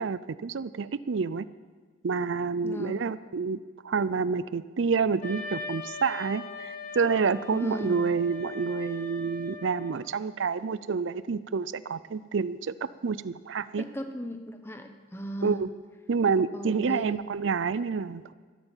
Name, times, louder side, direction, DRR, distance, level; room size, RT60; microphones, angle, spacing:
voice 1, 0.0-1.4 2.0-3.6 3.8-12.7 13.0-13.8 15.4-15.7 16.1-18.3, right 5 dB, 70° right, 16 dB, 0.5 m, -28 dB
voice 2, 2.6-3.0 7.5-8.1 13.8-15.6 16.3-17.2, equal, 10° left, 6 dB, 1.0 m, -37 dB
Wind instrument woodwind instrument, 5.2-10.1, left 4 dB, 40° left, 3.1 m, -41 dB
13.5 x 12.5 x 7.3 m, 1.5 s
head